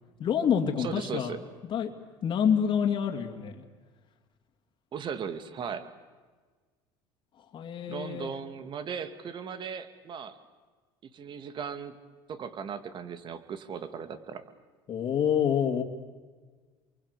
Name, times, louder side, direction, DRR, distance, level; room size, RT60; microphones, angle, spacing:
voice 1, 0.2-1.4 1.6-1.9 2.2-3.6 7.5-8.3 14.9-15.8, left 8 dB, 45° left, 3 dB, 2.7 m, -27 dB
voice 2, 0.8-1.4 4.9-5.9 7.9-10.4 11.1-12.0 12.3-14.4, right 7 dB, 45° right, 10 dB, 2.3 m, -37 dB
28.5 x 23.0 x 8.4 m, 1.4 s
supercardioid pair, 105°, 11 cm